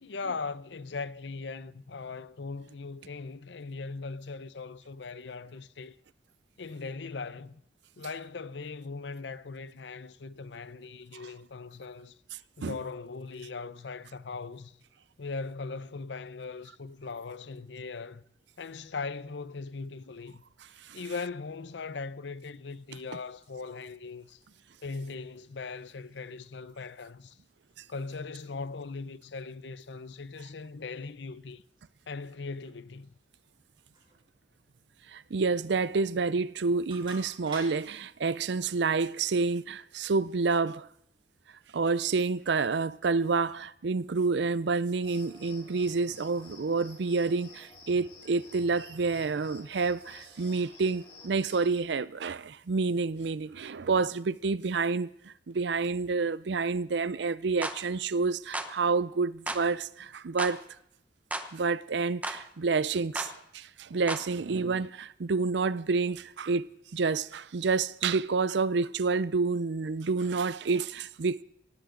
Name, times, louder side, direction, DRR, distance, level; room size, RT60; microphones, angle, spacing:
voice 1, 0.0-6.0 6.6-7.6 8.0-12.2 12.6-14.8 15.2-18.2 18.6-20.4 20.9-24.4 24.8-27.4 27.9-31.6 32.1-33.1, left 4 dB, 80° left, 0.6 m, -39 dB
sound 1, 22.6-37.9, right 3 dB, 25° right, 4.0 m, -56 dB
voice 2, 35.1-40.9 41.7-60.6 61.5-66.7 66.9-71.4, right 4 dB, 75° right, 0.5 m, -29 dB
Cricket, 45.0-51.8, left 3 dB, 30° left, 4.3 m, -52 dB
sound 2, 57.6-57.8 58.5-58.7 59.5-59.6 60.4-60.6 61.3-61.5 62.2-62.4 63.2-63.3 64.1-64.3, right 1 dB, 10° right, 0.9 m, -34 dB
18.0 x 15.0 x 3.9 m
head